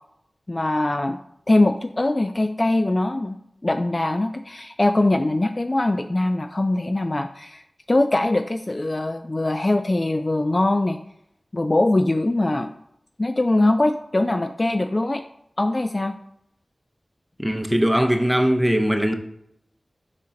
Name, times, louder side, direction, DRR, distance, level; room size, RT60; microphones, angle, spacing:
voice 1, 0.5-1.2 1.5-7.6 7.9-11.0 11.5-12.7 13.2-15.2 15.6-16.2, left 2 dB, 35° left, 0.3 m, -22 dB
voice 2, 17.4-19.1, equal, ahead, 0.7 m, -20 dB
5.7 x 3.7 x 5.1 m
wide cardioid pair, 65°, 0 cm